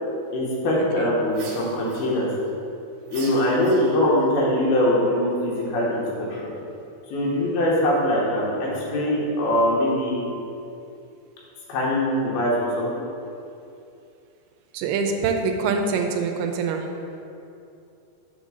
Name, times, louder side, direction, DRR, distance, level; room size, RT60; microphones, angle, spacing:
voice 1, 0.3-2.3 3.1-6.5 7.1-10.3 11.7-13.1, left 1 dB, 80° left, -5 dB, 3.1 m, -22 dB
sound 1, 1.3-2.5 3.1-4.2, right 3 dB, 75° right, 3.0 m, -42 dB
voice 2, 14.7-16.9, right 4 dB, 90° right, 4 dB, 2.6 m, -24 dB
6.8 x 3.8 x 6.2 m, 2.7 s
omnidirectional pair, 4.4 m